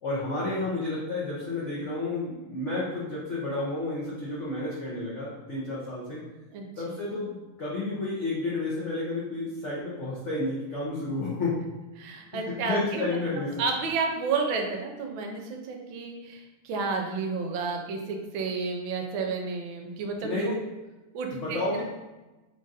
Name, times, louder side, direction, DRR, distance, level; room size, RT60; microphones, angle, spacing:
voice 1, 0.0-6.2 6.8-11.6 12.3-13.6 20.2-20.5 21.3-21.8, left 2 dB, 65° left, -7 dB, 0.7 m, -31 dB
voice 2, 6.5-6.8 12.0-13.1 13.6-20.5 21.1-21.6, right 4 dB, 75° right, 2 dB, 1.3 m, -31 dB
3.8 x 2.5 x 3.9 m, 1.1 s
omnidirectional pair, 2.3 m